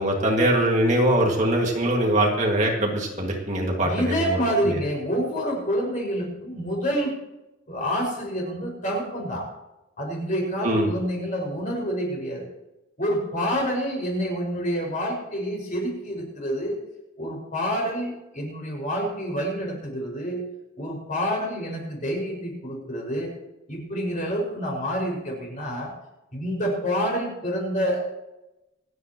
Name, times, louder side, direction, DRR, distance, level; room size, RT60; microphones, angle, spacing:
voice 1, 0.0-4.8 10.6-10.9, right 1 dB, 35° right, 0 dB, 2.1 m, -22 dB
voice 2, 3.8-7.1 7.7-9.5 10.0-12.5 13.0-16.8 17.2-20.4 20.8-23.3 23.7-25.9 26.3-28.0, equal, 40° left, -2 dB, 5.7 m, -27 dB
27.0 x 9.4 x 3.1 m, 0.96 s
head